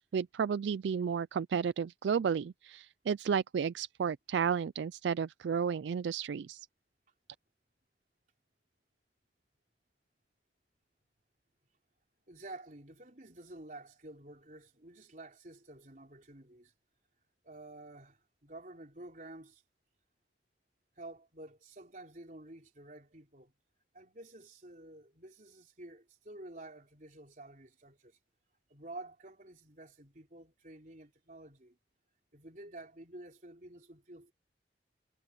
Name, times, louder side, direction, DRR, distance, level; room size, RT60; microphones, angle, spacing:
voice 1, 0.1-6.7, right 6 dB, 75° right, 0.3 m, -32 dB
voice 2, 12.3-16.7 17.4-19.6 21.0-23.5 23.9-28.2 28.7-31.8 32.3-34.3, right 2 dB, 45° right, 4.0 m, -50 dB
head